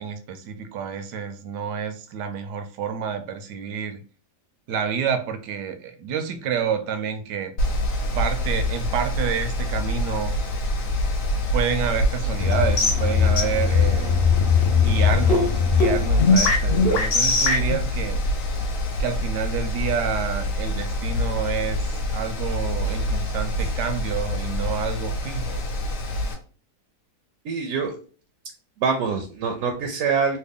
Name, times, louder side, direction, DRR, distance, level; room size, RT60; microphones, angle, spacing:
voice 1, 0.0-4.0 4.7-7.5 8.1-10.3 11.5-14.2 14.7-18.2 19.0-21.8 22.1-25.7, right 7 dB, 90° right, 8 dB, 1.2 m, -28 dB
Mechanical fan, 7.6-26.3, left 1 dB, 60° left, 1.0 m, -26 dB
sound 1, 12.4-17.8, left 5 dB, 85° left, 0.5 m, -20 dB
voice 2, 27.4-28.0 28.8-30.4, right 5 dB, 70° right, 4 dB, 0.8 m, -24 dB
3.2 x 2.2 x 3.5 m, 0.39 s
omnidirectional pair, 1.7 m